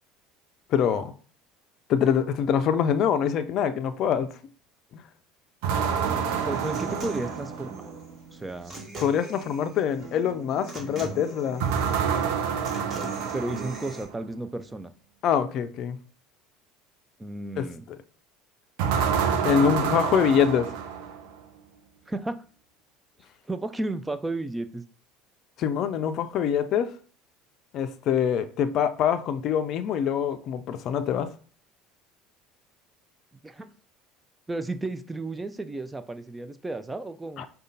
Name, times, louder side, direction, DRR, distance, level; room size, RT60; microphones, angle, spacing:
voice 1, 0.7-1.1 1.9-4.3 4.9-5.0 9.0-11.6 15.2-16.0 17.6-18.0 19.3-20.7 25.6-26.9 27.7-31.3 37.4-37.5, left 8 dB, 55° left, 0.4 m, -24 dB
sound 1, 5.6-8.0 11.6-14.1 18.8-21.4, right 7 dB, 70° right, 0.5 m, -28 dB
Human voice / Acoustic guitar, 6.0-14.0, right 2 dB, 35° right, 1.6 m, -40 dB
voice 2, 6.5-7.9 8.3-8.8 13.3-14.9 17.2-17.8 22.1-22.4 23.5-24.8 33.4-33.7 34.5-37.4, right 2 dB, 15° right, 0.4 m, -33 dB
5.0 x 2.3 x 3.9 m
hypercardioid pair, 75°, 0 cm